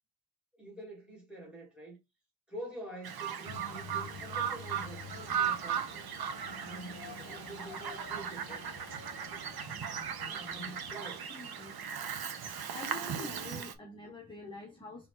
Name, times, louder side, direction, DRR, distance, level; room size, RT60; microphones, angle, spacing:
voice 1, 0.5-2.0 2.5-6.1 6.5-8.6 9.2-9.4 10.1-11.3, right 1 dB, 5° right, 2.1 m, -47 dB
Bird vocalization bird call bird song, 3.0-13.7, right 8 dB, 75° right, 0.8 m, -37 dB
sound 1, 3.5-11.0, left 7 dB, 55° left, 0.7 m, -49 dB
voice 2, 11.3-11.9 12.7-15.1, left 2 dB, 15° left, 0.7 m, -46 dB
4.3 x 2.9 x 3.8 m
wide cardioid pair, 180°, 37 cm